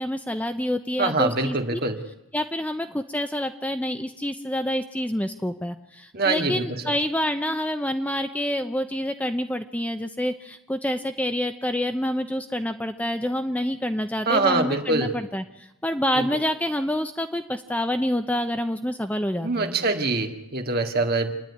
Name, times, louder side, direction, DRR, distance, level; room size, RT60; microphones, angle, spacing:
voice 1, 0.0-1.8 2.3-19.7, left 1 dB, 5° left, 7 dB, 0.7 m, -27 dB
voice 2, 1.0-2.0 6.1-6.6 14.3-15.1 16.1-16.2 19.4-21.3, right 3 dB, 45° right, 4 dB, 2.1 m, -24 dB
27.5 x 10.5 x 9.8 m, 0.88 s
head